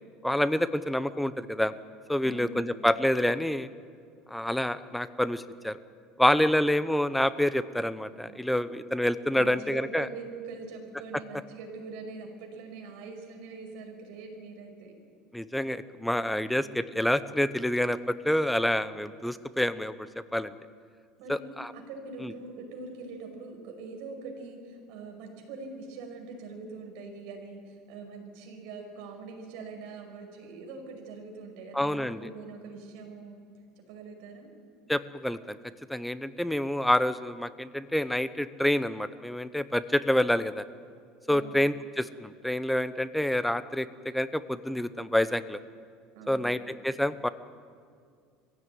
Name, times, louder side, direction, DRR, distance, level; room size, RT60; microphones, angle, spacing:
voice 1, 0.2-1.7 2.1-3.7 4.3-5.8 6.2-10.1 15.3-19.9 20.3-20.5 21.3-21.7 22.2-22.3 31.7-32.3 34.9-35.6 35.9-40.6 41.3-45.6 46.3-47.3, left 1 dB, 5° left, 13 dB, 0.8 m, -27 dB
voice 2, 2.2-2.8 8.1-8.4 8.6-8.9 9.4-14.9 21.2-33.4 33.8-34.5 41.3-41.7 46.1-46.5, right 4 dB, 70° right, 3 dB, 5.6 m, -43 dB
23.5 x 16.0 x 9.4 m, 2.1 s
supercardioid pair, 130°, 0 cm